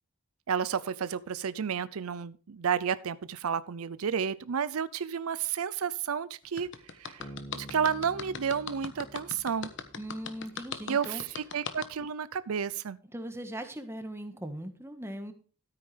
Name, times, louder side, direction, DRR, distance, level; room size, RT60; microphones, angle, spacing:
voice 1, 0.5-6.7 7.0-7.3 7.5-9.7 10.9-13.0, right 7 dB, 80° right, 16 dB, 0.5 m, -31 dB
sound 1, 6.6-11.9, left 5 dB, 55° left, 1.2 m, -39 dB
Bass guitar, 7.2-10.7, right 1 dB, 15° left, 3.8 m, -48 dB
voice 2, 10.0-11.2 13.1-15.3, right 1 dB, 10° right, 7 dB, 1.4 m, -39 dB
13.0 x 9.2 x 3.3 m, 0.39 s
head